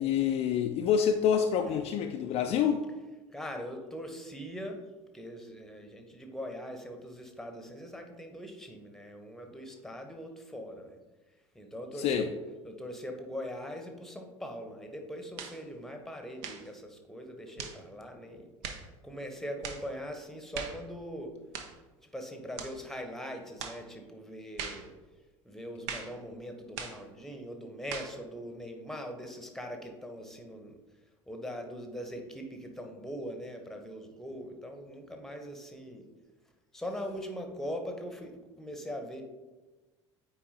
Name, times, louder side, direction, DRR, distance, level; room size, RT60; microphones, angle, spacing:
voice 1, 0.0-2.8 12.0-12.3, left 8 dB, 40° left, 5 dB, 0.4 m, -27 dB
voice 2, 3.3-4.8 5.1-11.0 11.5-12.3 12.6-21.3 22.1-24.9 25.4-30.7 31.3-36.1 36.7-39.2, equal, ahead, 4 dB, 0.9 m, -41 dB
sound 1, 15.4-15.6 16.4-16.7 17.6-17.8 18.6-18.9 19.6-19.9 20.5-20.8 21.5-21.8 22.6-22.8 23.6-23.8 24.6-24.9 25.9-26.2 26.8-27.0 27.9-28.2, right 6 dB, 55° right, 0.7 m, -40 dB
8.5 x 4.5 x 2.8 m, 1.2 s
figure-of-eight pair, 65°, 16 cm